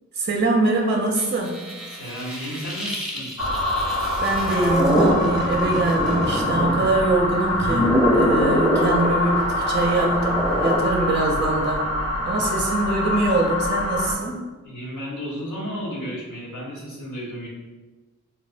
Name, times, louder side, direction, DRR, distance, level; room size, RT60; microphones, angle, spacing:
voice 1, 0.1-1.6 4.2-11.8 12.2-14.4, right 2 dB, 35° right, 0 dB, 0.5 m, -23 dB
sound 1, 1.2-7.1 7.4-10.8, equal, ahead, 0.7 m, -25 dB
voice 2, 1.9-3.3 12.3-12.5 14.6-17.5, equal, 80° left, -4 dB, 1.0 m, -33 dB
sound 2, 3.4-14.1, left 2 dB, 55° left, 0.6 m, -25 dB
4.1 x 2.1 x 2.4 m, 1.2 s
wide cardioid pair, 50°, 31 cm